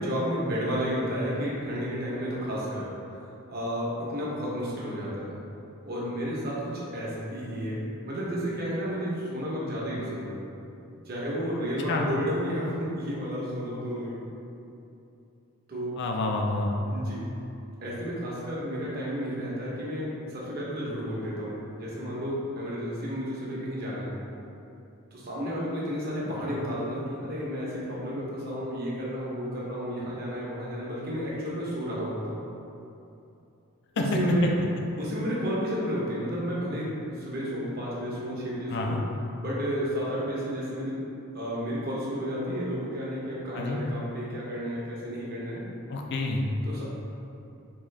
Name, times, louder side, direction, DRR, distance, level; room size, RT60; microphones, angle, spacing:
voice 1, 0.0-2.9 3.5-5.3 5.8-10.4 11.1-14.2 15.7-16.0 16.9-17.2 17.8-24.1 25.1-32.4 34.0-34.5 35.0-39.0 39.4-41.0 41.3-45.6 46.6-46.8, equal, 45° right, -6 dB, 0.8 m, -32 dB
voice 2, 16.0-16.7 34.0-34.2 38.7-39.0 43.5-43.8 45.9-46.5, left 2 dB, 55° left, 1 dB, 0.4 m, -28 dB
3.7 x 2.4 x 3.2 m, 2.8 s
head